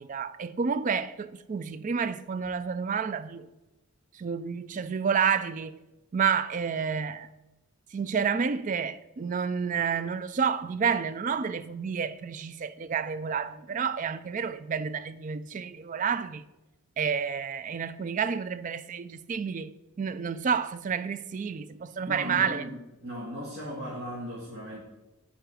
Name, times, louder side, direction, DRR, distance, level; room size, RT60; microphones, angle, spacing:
voice 1, 0.0-3.5 4.1-5.8 6.1-7.3 7.9-16.4 17.0-22.6, right 6 dB, 35° right, 0.3 m, -30 dB
voice 2, 22.0-24.8, equal, 50° right, 1.6 m, -37 dB
7.9 x 3.8 x 6.2 m
head